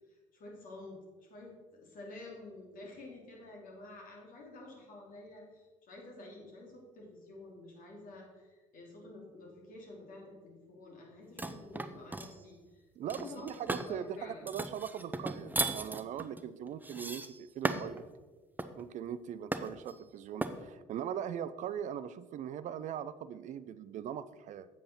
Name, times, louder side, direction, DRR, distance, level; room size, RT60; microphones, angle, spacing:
voice 1, 0.1-14.5, left 2 dB, 55° left, -1 dB, 2.9 m, -50 dB
sound 1, 11.4-12.3 13.1-13.9 14.5-18.0 18.6-18.8 19.5-19.9 20.4-20.6, right 2 dB, 10° right, 0.7 m, -36 dB
voice 2, 13.0-18.0 18.8-24.7, right 9 dB, 45° right, 15 dB, 0.5 m, -40 dB
7.5 x 7.5 x 4.3 m, 1.3 s
hypercardioid pair, 55°, 17 cm